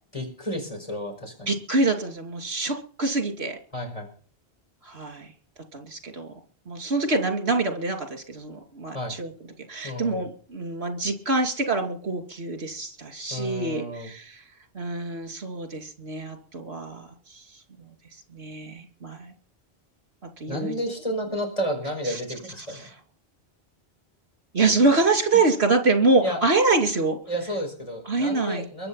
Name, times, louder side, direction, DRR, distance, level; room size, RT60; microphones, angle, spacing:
voice 1, 0.1-1.5 3.7-4.1 8.9-9.2 9.8-10.3 13.3-14.1 20.5-22.9 26.2-26.4 27.3-28.9, equal, 30° left, 2 dB, 5.4 m, -31 dB
voice 2, 1.5-3.6 4.8-5.3 5.7-6.3 6.7-9.3 9.7-14.4 14.7-17.4 17.8-17.9 18.3-19.3 20.4-20.7 22.0-22.2 22.7-22.9 24.5-27.2 28.0-28.7, right 3 dB, 75° right, 6 dB, 2.9 m, -25 dB
23.0 x 7.9 x 5.7 m, 0.44 s
omnidirectional pair, 1.1 m